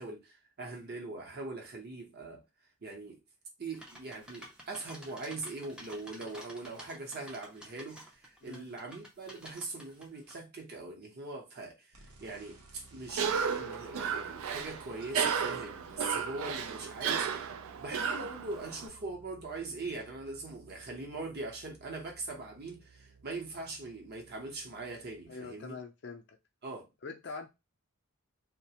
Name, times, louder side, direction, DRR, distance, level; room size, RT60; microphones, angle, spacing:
voice 1, 0.0-2.4 2.8-3.2 3.6-25.8 26.6-26.9, right 3 dB, 45° right, 0.7 m, -41 dB
sound 1, 3.7-10.4, equal, 5° right, 0.4 m, -51 dB
sound 2, 11.9-25.3, right 3 dB, 85° right, 0.8 m, -57 dB
Cough, 13.1-18.9, right 6 dB, 70° right, 0.3 m, -34 dB
voice 2, 25.3-26.4 27.0-27.5, left 4 dB, 50° left, 0.5 m, -44 dB
2.4 x 2.1 x 2.8 m
head